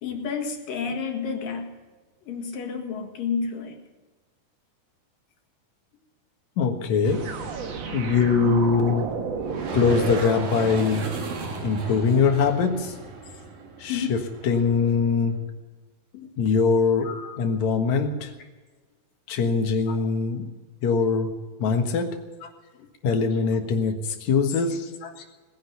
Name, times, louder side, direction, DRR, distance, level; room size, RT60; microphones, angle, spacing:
voice 1, 0.0-1.7 2.2-3.8 13.9-14.1 16.1-16.3 17.0-17.4 19.9-20.0 25.0-25.2, left 6 dB, 75° left, 2 dB, 3.5 m, -31 dB
voice 2, 6.6-7.2 7.9-9.1 9.7-11.1 11.6-12.9 13.8-15.4 16.4-17.1 17.4-18.3 19.3-20.5 20.8-21.3 21.6-22.0 23.0-24.9, left 5 dB, 60° left, 5 dB, 2.6 m, -22 dB
sound 1, 7.0-11.0, right 5 dB, 55° right, 1.4 m, -33 dB
sound 2, 9.4-15.1, right 3 dB, 80° right, 4.2 m, -34 dB
19.5 x 10.5 x 7.0 m, 1.3 s
omnidirectional pair, 4.0 m